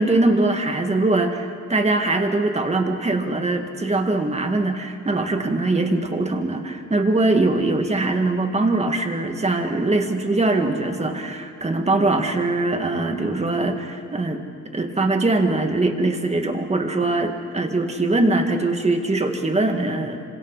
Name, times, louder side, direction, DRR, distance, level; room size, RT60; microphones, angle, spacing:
voice 1, 0.0-14.4 14.7-20.2, right 2 dB, 20° right, 5 dB, 2.1 m, -22 dB
26.5 x 26.0 x 4.2 m, 2.3 s
cardioid pair, 90°, 30 cm